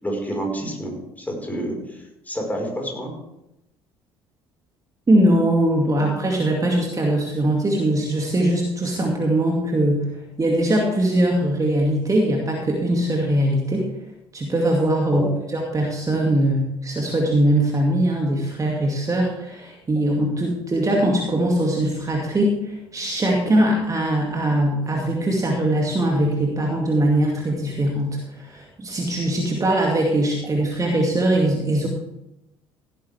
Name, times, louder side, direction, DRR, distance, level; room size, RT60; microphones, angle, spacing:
voice 1, 0.0-3.1 15.1-15.3, right 1 dB, 15° left, 0 dB, 4.8 m, -28 dB
voice 2, 5.1-10.1 10.4-13.9 14.3-31.9, right 1 dB, 25° right, -1 dB, 2.3 m, -21 dB
16.5 x 9.0 x 3.5 m, 0.88 s
hypercardioid pair, 55°, 13 cm